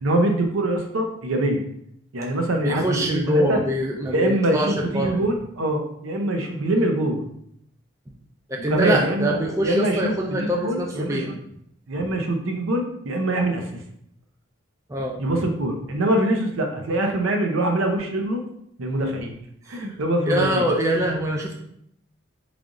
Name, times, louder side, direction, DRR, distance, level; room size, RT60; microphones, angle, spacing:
voice 1, 0.0-1.6 2.1-3.6 4.1-7.2 8.6-11.4 11.9-13.7 15.2-18.4 18.8-19.4 19.7-20.6, right 1 dB, 85° right, 3 dB, 0.6 m, -24 dB
voice 2, 2.6-5.2 8.5-11.4 12.0-12.1 14.9-15.2 20.3-21.6, equal, 15° right, -1 dB, 0.3 m, -24 dB
3.3 x 2.4 x 3.7 m, 0.72 s
head